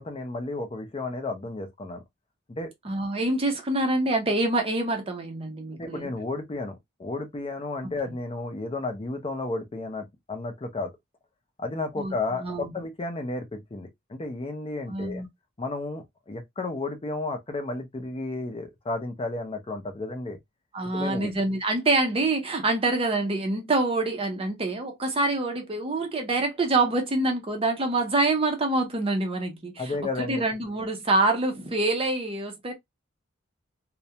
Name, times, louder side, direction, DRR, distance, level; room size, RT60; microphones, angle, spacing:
voice 1, 0.0-2.0 2.5-2.7 5.7-10.9 11.6-15.2 15.6-20.4 20.9-21.3 29.8-30.4, left 2 dB, 30° left, 0.5 m, -33 dB
voice 2, 2.8-6.1 12.0-12.7 14.9-15.3 20.7-32.7, right 2 dB, 30° right, 0.5 m, -26 dB
2.3 x 2.1 x 2.7 m
head